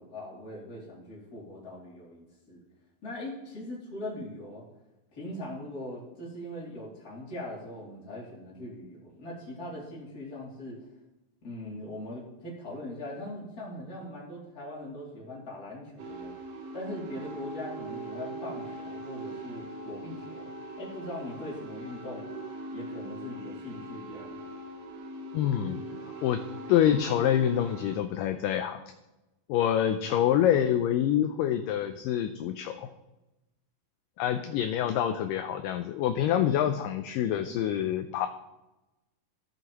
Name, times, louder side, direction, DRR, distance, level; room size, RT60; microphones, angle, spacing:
voice 1, 0.0-2.6 3.0-4.6 5.1-10.9 11.4-16.3 16.7-22.2 22.7-24.4, left 1 dB, 30° left, -5 dB, 2.7 m, -41 dB
sound 1, 16.0-28.0, right 2 dB, 85° right, 3.2 m, -41 dB
voice 2, 25.3-25.8 26.2-26.4 26.7-28.8 29.5-32.9 34.2-38.3, left 10 dB, 80° left, 8 dB, 2.0 m, -26 dB
14.5 x 7.9 x 3.0 m, 0.98 s
omnidirectional pair, 4.2 m